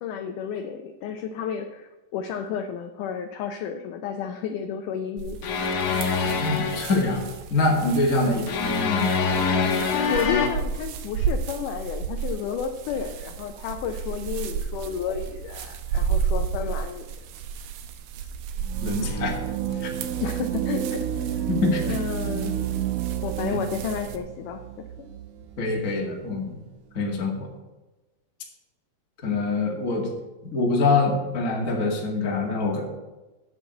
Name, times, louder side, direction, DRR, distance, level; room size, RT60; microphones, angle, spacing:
voice 1, 0.0-5.4 8.2-8.5 10.1-17.1 20.2-21.4 21.8-22.6 23.2-24.9, left 7 dB, 80° left, 6 dB, 1.8 m, -32 dB
sound 1, 5.2-24.2, right 7 dB, 70° right, 2.4 m, -33 dB
sound 2, 5.4-7.1 8.5-10.5, left 5 dB, 65° left, 2.3 m, -25 dB
voice 2, 6.3-9.1 18.8-19.4 19.7-19.9 21.6-22.0 25.6-26.6 26.9-27.5 29.2-30.1 30.4-32.8, left 3 dB, 30° left, 0 dB, 1.6 m, -25 dB
sound 3, 18.6-25.8, right 10 dB, 90° right, 1.7 m, -30 dB
8.4 x 7.3 x 7.9 m, 1.1 s
omnidirectional pair, 4.5 m